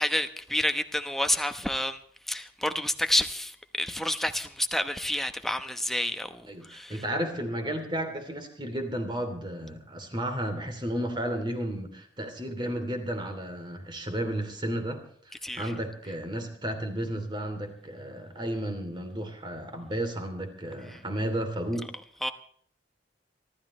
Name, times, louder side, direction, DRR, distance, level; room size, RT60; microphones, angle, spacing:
voice 1, 0.0-2.0 2.3-3.5 3.8-6.4 6.7-7.0 15.4-15.7 22.2-22.3, left 1 dB, ahead, 0.9 m, -29 dB
voice 2, 6.5-21.9, right 1 dB, 25° right, 3.0 m, -33 dB
26.0 x 13.0 x 3.2 m
head